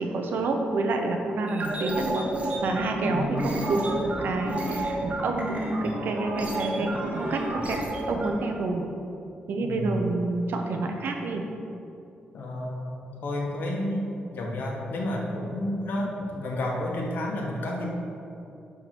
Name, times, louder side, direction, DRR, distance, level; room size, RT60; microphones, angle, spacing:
voice 1, 0.0-2.3 2.6-8.8 9.5-11.4, right 2 dB, 70° right, 3 dB, 1.0 m, -28 dB
sound 1, 1.5-8.3, right 1 dB, 40° right, 1.3 m, -31 dB
voice 2, 3.1-3.4 9.6-10.0 12.3-17.9, left 1 dB, 65° left, -2 dB, 1.6 m, -31 dB
11.0 x 3.9 x 6.0 m, 2.7 s
wide cardioid pair, 140°, 3 cm